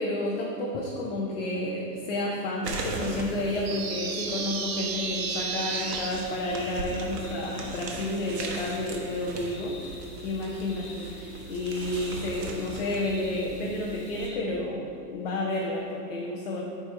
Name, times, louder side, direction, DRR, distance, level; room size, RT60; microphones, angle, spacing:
voice 1, 0.0-16.6, left 1 dB, 40° left, -2 dB, 0.6 m, -31 dB
sound 1, 2.6-14.3, right 3 dB, 75° right, 1.3 m, -39 dB
sound 2, 3.2-14.4, left 3 dB, 60° left, 1.3 m, -49 dB
sound 3, 3.6-6.1, right 5 dB, 40° right, 0.6 m, -32 dB
9.1 x 3.4 x 4.3 m, 2.5 s
supercardioid pair, 170°, 48 cm